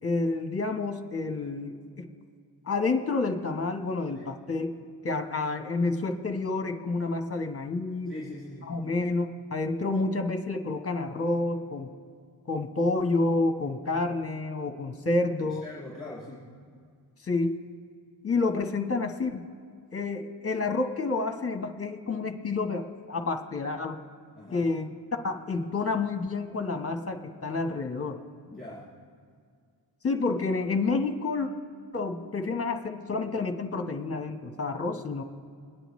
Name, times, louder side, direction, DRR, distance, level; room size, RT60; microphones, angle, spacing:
voice 1, 0.0-2.1 2.7-4.8 5.0-8.1 8.7-11.9 12.5-15.6 17.2-17.6 18.2-19.4 19.9-24.0 24.5-24.9 25.2-28.2 30.0-31.5 31.9-35.2, left 3 dB, 30° left, 5 dB, 1.0 m, -29 dB
voice 2, 8.1-8.7 13.6-13.7 15.4-16.5 24.3-24.7 28.5-28.9, left 1 dB, 15° left, -8 dB, 2.9 m, -42 dB
22.5 x 10.0 x 3.1 m, 2.2 s
wide cardioid pair, 130°, 44 cm